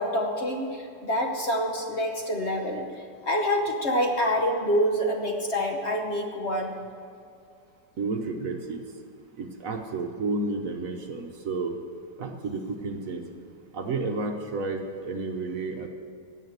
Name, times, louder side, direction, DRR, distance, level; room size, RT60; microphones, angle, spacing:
voice 1, 0.0-2.8 3.2-6.7, equal, 45° left, 2 dB, 1.1 m, -26 dB
voice 2, 8.0-8.8 9.4-11.7 12.2-13.2 13.7-15.9, right 3 dB, 55° right, 4 dB, 1.2 m, -31 dB
17.0 x 5.8 x 8.0 m, 2.4 s
omnidirectional pair, 1.8 m